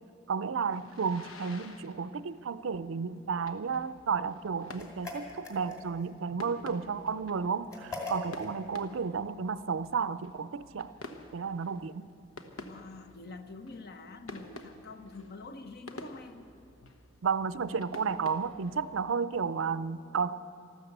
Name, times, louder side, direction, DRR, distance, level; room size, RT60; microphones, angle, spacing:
voice 1, 0.3-10.9 11.3-12.1 17.2-20.4, right 5 dB, 70° right, 0.5 m, -32 dB
sound 1, 0.7-19.1, left 2 dB, 85° left, 1.2 m, -51 dB
sound 2, 4.8-6.1 7.7-8.5, left 3 dB, 15° left, 2.5 m, -40 dB
voice 2, 12.6-16.5 16.8-17.0, left 3 dB, 50° left, 1.0 m, -46 dB
13.5 x 12.5 x 8.0 m
head